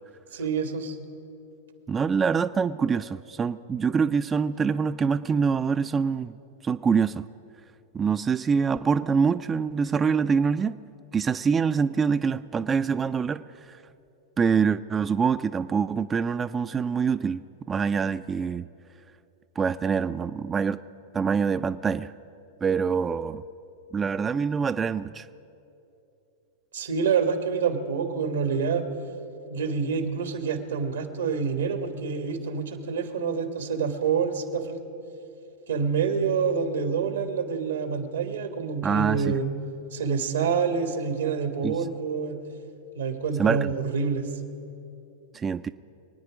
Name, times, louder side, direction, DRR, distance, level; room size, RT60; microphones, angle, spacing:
voice 1, 0.3-1.0 26.7-28.8 29.5-34.8 35.7-39.5 39.9-42.4 42.9-44.2, right 6 dB, 85° right, 7 dB, 1.5 m, -27 dB
voice 2, 1.9-6.4 6.6-7.2 7.9-10.8 11.1-13.8 14.4-18.7 19.6-20.8 21.1-22.1 22.6-23.4 23.9-25.3 38.8-39.4 41.6-41.8 43.4-43.7 45.3-45.7, right 6 dB, 20° right, 11 dB, 0.3 m, -25 dB
24.5 x 9.4 x 5.0 m, 2.8 s
hypercardioid pair, 110°, 0 cm